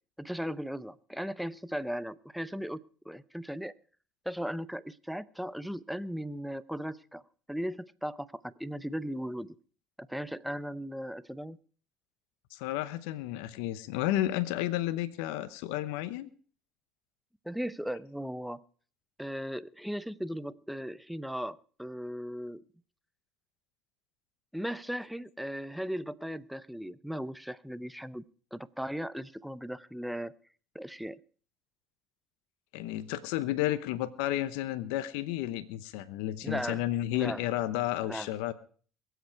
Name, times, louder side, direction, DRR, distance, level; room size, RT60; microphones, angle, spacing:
voice 1, 0.2-3.7 4.2-7.2 7.5-9.6 10.0-11.6 17.4-18.6 19.2-22.6 24.5-28.2 28.5-30.3 30.7-31.2 36.4-36.8 37.1-37.4 38.0-38.3, equal, ahead, 17 dB, 0.7 m, -37 dB
voice 2, 12.5-16.3 32.7-38.5, left 14 dB, 75° left, 12 dB, 0.9 m, -32 dB
22.5 x 8.1 x 4.7 m, 0.42 s
supercardioid pair, 85°, 0 cm